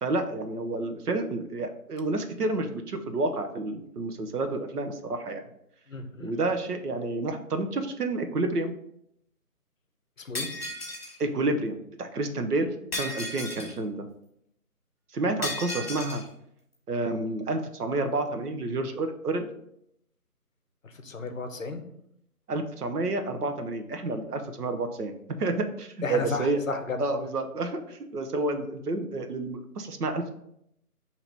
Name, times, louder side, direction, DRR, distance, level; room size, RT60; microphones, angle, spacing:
voice 1, 0.0-5.4 6.2-8.7 11.2-12.7 13.0-14.1 15.1-16.2 16.9-19.5 22.5-25.1 25.4-26.6 27.0-30.3, right 2 dB, 80° right, 7 dB, 0.8 m, -29 dB
voice 2, 5.9-6.3 10.2-10.5 20.8-21.8 26.0-27.3, left 3 dB, 60° left, 7 dB, 0.6 m, -33 dB
Shatter, 10.3-11.2 12.9-13.8 15.4-16.2, left 2 dB, 40° left, 1.1 m, -34 dB
4.5 x 2.9 x 3.9 m, 0.75 s
figure-of-eight pair, 175°, 46 cm